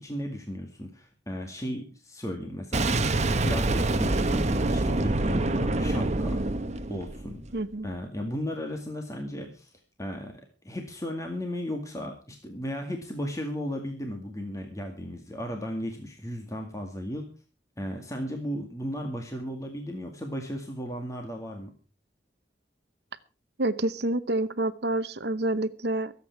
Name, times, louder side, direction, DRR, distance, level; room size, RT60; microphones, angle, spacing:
voice 1, 0.0-6.4 6.9-7.4 7.8-17.3 17.8-21.7, equal, 20° left, 3 dB, 2.1 m, -35 dB
Boom, 2.7-7.6, right 2 dB, 40° right, 1.1 m, -26 dB
voice 2, 7.5-7.9 23.6-26.1, right 2 dB, 65° right, 12 dB, 0.9 m, -28 dB
23.5 x 8.4 x 4.7 m, 0.35 s
head